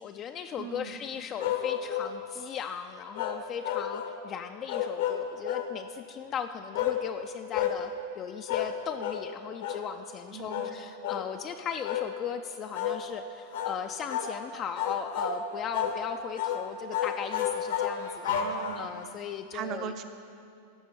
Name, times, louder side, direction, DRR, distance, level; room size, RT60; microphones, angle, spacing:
voice 1, 0.0-18.4 18.8-19.9, left 8 dB, 30° left, 6 dB, 0.3 m, -37 dB
voice 2, 0.6-1.0 10.3-10.7 18.3-18.9 19.5-20.0, right 8 dB, 35° right, 8 dB, 0.6 m, -38 dB
sound 1, 1.4-2.1 3.1-4.2 4.7-5.7 6.7-7.0 7.5-7.8 8.5-8.7 9.0-9.2 9.6-9.8 10.5-10.7 11.0-11.3 11.8-12.1 12.7-13.0 13.5-13.8 14.1-14.3 14.8-15.4 15.7-16.0 16.4-16.6 16.9-19.0, left 9 dB, 60° left, 0.8 m, -31 dB
15.0 x 6.0 x 4.3 m, 2.5 s
figure-of-eight pair, 90°, 0 cm